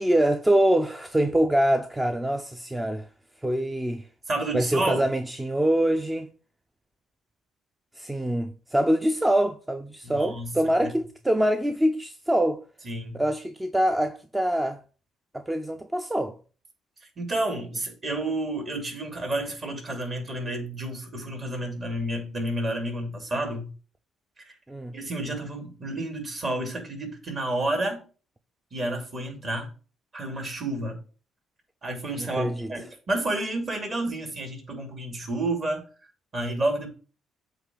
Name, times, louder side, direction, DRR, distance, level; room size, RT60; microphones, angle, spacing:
voice 1, 0.0-3.1 3.4-4.1 4.5-6.3 7.9-12.6 13.1-14.8 15.3-16.3 24.7-25.0 32.2-32.7, right 1 dB, 10° right, 0.5 m, -24 dB
voice 2, 4.3-5.1 10.0-10.5 10.8-10.9 12.8-13.2 17.2-23.7 24.9-28.0 28.7-29.7 30.1-31.0 31.8-35.9 36.3-36.9, right 1 dB, 40° right, 2.7 m, -30 dB
7.9 x 3.0 x 6.1 m
cardioid pair, 80°, 0 cm